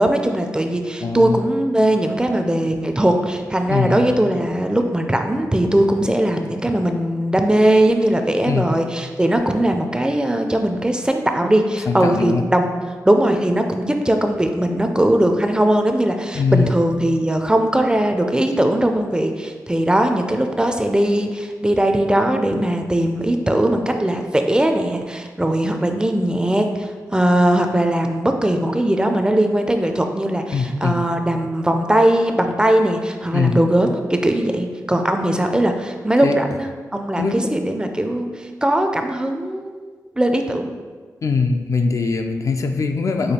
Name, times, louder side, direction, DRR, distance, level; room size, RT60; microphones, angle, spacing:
voice 1, 0.0-12.7 13.1-39.8 40.2-40.7, right 1 dB, 15° right, 5 dB, 0.4 m, -19 dB
voice 2, 1.0-1.4 3.7-4.1 8.4-8.7 11.9-12.4 16.3-16.7 30.5-31.0 33.3-33.6 36.2-36.4 37.2-37.4 41.2-43.3, left 4 dB, 55° left, 5 dB, 0.3 m, -21 dB
5.0 x 2.3 x 4.2 m, 1.5 s
cardioid pair, 75°, 6 cm